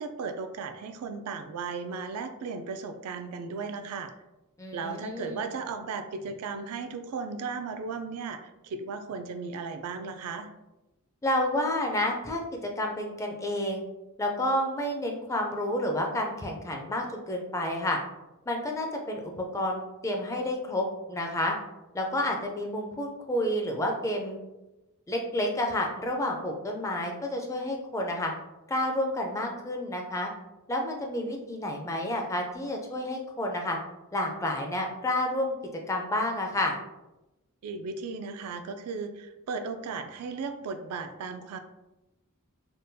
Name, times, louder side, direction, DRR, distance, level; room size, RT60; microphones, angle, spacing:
voice 1, 0.0-4.1 4.7-10.5 37.6-41.6, right 4 dB, 80° right, 8 dB, 0.3 m, -36 dB
voice 2, 4.6-5.4 11.2-13.8 14.2-18.0 18.5-21.6 21.9-24.4 25.1-28.3 28.7-30.3 30.7-33.8 34.1-35.5 35.9-36.7, left 1 dB, 15° left, 1 dB, 0.4 m, -30 dB
3.6 x 2.2 x 2.6 m, 0.98 s
head